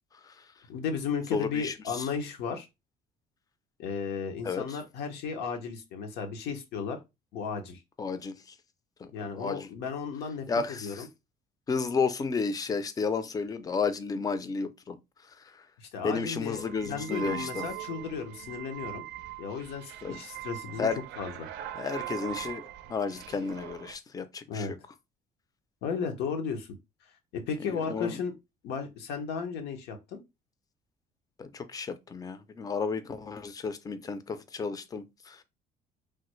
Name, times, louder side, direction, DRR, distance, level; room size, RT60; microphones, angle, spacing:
voice 1, 0.7-2.7 3.8-7.0 7.3-7.8 9.1-11.1 15.8-19.0 19.4-20.9 21.2-21.5 24.5-24.7 25.8-26.7 27.3-28.3 28.6-30.2, left 6 dB, 85° left, 0.7 m, -34 dB
voice 2, 1.3-2.1 4.4-4.6 8.0-8.3 9.0-9.1 9.3-9.7 10.5-11.0 11.7-15.0 16.0-17.6 20.0-20.2 20.8-21.0 21.8-22.6 22.9-24.7 27.9-28.2 31.4-35.4, left 5 dB, 20° left, 0.4 m, -32 dB
sound 1, 16.5-24.0, right 13 dB, 85° right, 0.4 m, -41 dB
3.2 x 2.0 x 3.0 m
cardioid pair, 110°, 17 cm